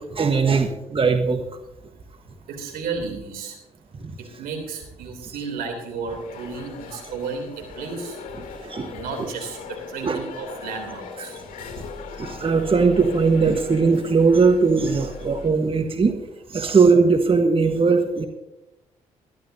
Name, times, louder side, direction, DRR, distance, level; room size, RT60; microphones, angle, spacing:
voice 1, 0.0-1.5 4.0-4.1 5.2-5.3 8.6-8.9 9.2-9.3 10.0-10.2 11.2-11.3 12.2-16.2 16.5-18.3, right 4 dB, 35° right, 5 dB, 1.4 m, -19 dB
voice 2, 2.5-3.5 4.4-8.2 8.9-11.3, right 5 dB, 70° right, 3 dB, 3.2 m, -33 dB
sound 1, 6.1-15.5, left 5 dB, 60° left, 3.0 m, -39 dB
20.5 x 12.0 x 2.7 m, 0.89 s
hypercardioid pair, 45°, 16 cm